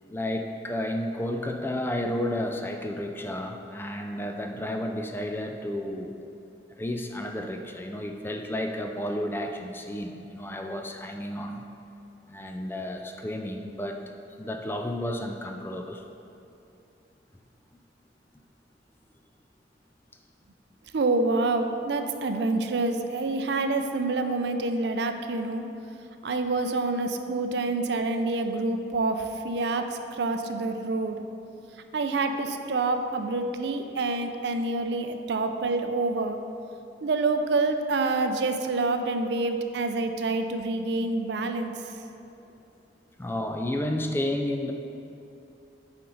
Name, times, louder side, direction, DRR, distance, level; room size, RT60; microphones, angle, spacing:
voice 1, 0.1-6.1 6.8-11.6 12.3-14.1 14.4-16.0 43.2-44.7, left 1 dB, 10° left, 4 dB, 0.3 m, -32 dB
voice 2, 20.9-25.6 26.2-31.2 31.9-36.4 37.0-41.7, right 3 dB, 70° right, 7 dB, 0.4 m, -27 dB
8.5 x 4.4 x 3.9 m, 2.8 s
head